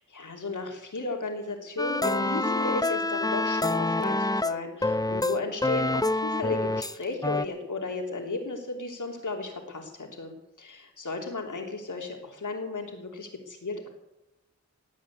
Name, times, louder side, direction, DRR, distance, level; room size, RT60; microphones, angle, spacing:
voice 1, 0.1-13.9, left 3 dB, 85° left, 2 dB, 3.1 m, -34 dB
sound 1, 1.8-7.0 7.2-7.5, left 2 dB, 15° left, 0.7 m, -27 dB
18.0 x 9.0 x 8.6 m, 0.91 s
cardioid pair, 40°, 30 cm